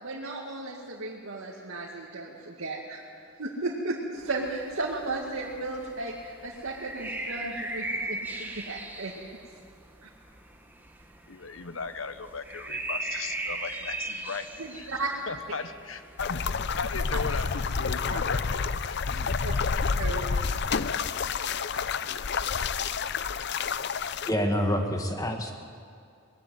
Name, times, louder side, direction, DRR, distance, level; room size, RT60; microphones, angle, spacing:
voice 1, 0.0-3.1 3.4-9.1 10.0-10.1 14.6-15.1 18.1-18.2 19.4-19.5 20.0-20.3, right 2 dB, 80° right, -4 dB, 2.2 m, -34 dB
sound 1, 4.2-17.9, right 2 dB, 10° right, 1.5 m, -39 dB
voice 2, 11.3-14.5 14.7-14.9 15.3-19.2 20.0-20.5, left 4 dB, 75° left, 10 dB, 1.1 m, -37 dB
sound 2, 16.2-24.3, left 5 dB, 55° left, 0.6 m, -29 dB
voice 3, 24.3-25.5, equal, 15° left, 4 dB, 1.8 m, -27 dB
20.5 x 15.5 x 9.4 m, 2.5 s
head